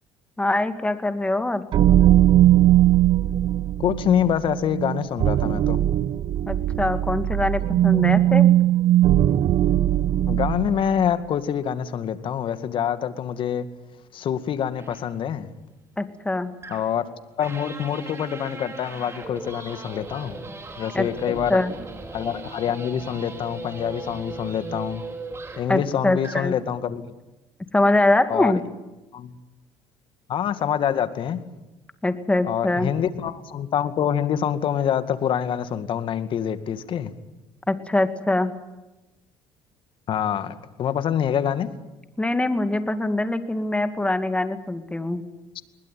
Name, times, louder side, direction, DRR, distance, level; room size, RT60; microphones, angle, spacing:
voice 1, 0.4-1.6 6.5-8.5 16.0-16.5 20.9-21.7 25.7-26.5 27.7-28.6 32.0-32.9 37.7-38.5 42.2-45.2, left 2 dB, 10° left, 10 dB, 2.4 m, -23 dB
sound 1, 1.7-10.9, right 12 dB, 55° right, 0.8 m, -19 dB
voice 2, 3.8-5.8 10.3-13.7 14.1-15.5 16.7-17.1 17.4-20.4 20.8-21.6 22.1-25.0 25.6-27.1 28.3-28.6 29.1-29.3 30.3-31.4 32.4-37.1 40.1-41.7, left 9 dB, 55° left, 11 dB, 2.2 m, -26 dB
sound 2, 14.8-15.0 16.6-17.0 17.4-25.8 26.2-26.5, right 3 dB, 25° right, 5.0 m, -38 dB
21.5 x 21.0 x 9.3 m, 1.0 s
supercardioid pair, 90°, 10 cm